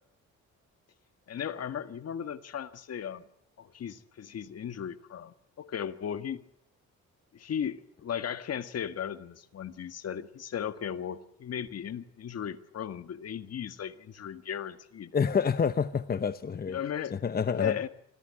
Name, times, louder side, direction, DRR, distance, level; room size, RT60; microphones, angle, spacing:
voice 1, 1.3-3.3 3.6-6.4 7.3-15.1 16.7-17.2 17.5-17.9, left 8 dB, 55° left, 1.7 m, -36 dB
voice 2, 15.1-16.8 17.1-17.8, left 6 dB, 30° left, 0.8 m, -28 dB
26.0 x 15.5 x 9.7 m
cardioid pair, 90°, 30 cm